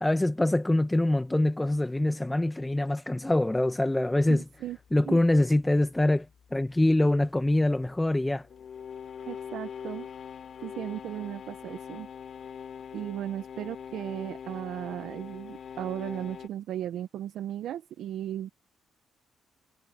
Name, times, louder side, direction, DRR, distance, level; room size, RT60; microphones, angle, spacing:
voice 1, 0.0-4.4 4.9-6.3 6.5-8.4, left 1 dB, 10° left, 0.9 m, -24 dB
sound 1, 4.3-16.5, left 7 dB, 55° left, 3.1 m, -43 dB
voice 2, 4.3-4.8 5.1-5.2 9.3-10.1 10.6-12.1 12.9-18.5, right 11 dB, 75° right, 0.8 m, -36 dB
cardioid pair, 90°, 0 cm